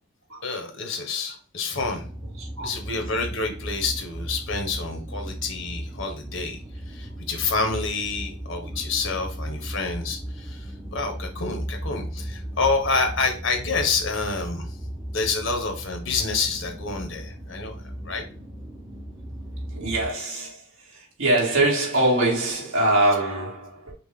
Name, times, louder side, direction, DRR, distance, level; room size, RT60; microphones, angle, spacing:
voice 1, 0.4-2.1 2.6-6.6 6.9-14.8 15.1-17.8 18.0-18.2, left 4 dB, 65° left, 1.3 m, -28 dB
sound 1, 1.7-20.1, equal, 15° right, 0.8 m, -36 dB
voice 2, 2.4-2.7 19.7-23.9, right 1 dB, 85° right, 2.5 m, -23 dB
5.7 x 2.5 x 3.6 m
head